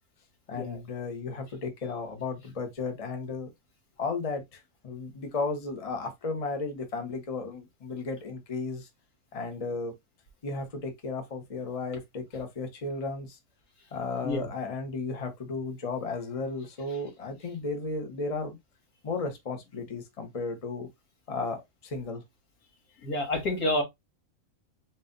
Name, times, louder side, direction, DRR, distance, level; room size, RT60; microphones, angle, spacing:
voice 1, 0.5-3.5 4.0-8.9 9.3-9.9 10.4-13.4 13.9-18.6 19.0-20.9 21.3-22.2, left 3 dB, 30° left, 0.9 m, -34 dB
voice 2, 23.0-23.8, left 1 dB, 85° left, 2.1 m, -28 dB
4.3 x 2.6 x 3.8 m
omnidirectional pair, 1.5 m